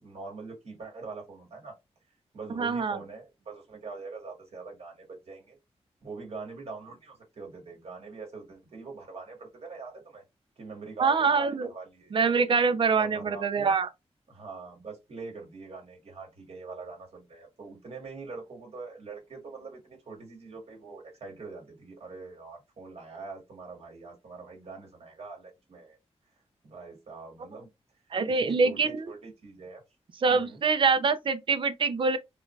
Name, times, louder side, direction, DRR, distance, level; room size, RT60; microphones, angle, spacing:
voice 1, 0.0-1.8 2.3-5.6 6.0-10.2 10.6-12.1 13.0-13.7 14.3-26.0 26.6-27.7 28.3-29.8 30.3-30.6, right 4 dB, 65° right, 2.2 m, -43 dB
voice 2, 2.6-3.0 11.0-11.7 12.1-13.9 28.1-29.1 30.2-32.2, right 4 dB, 50° right, 0.5 m, -25 dB
4.8 x 2.3 x 3.2 m
wide cardioid pair, 165°, 11 cm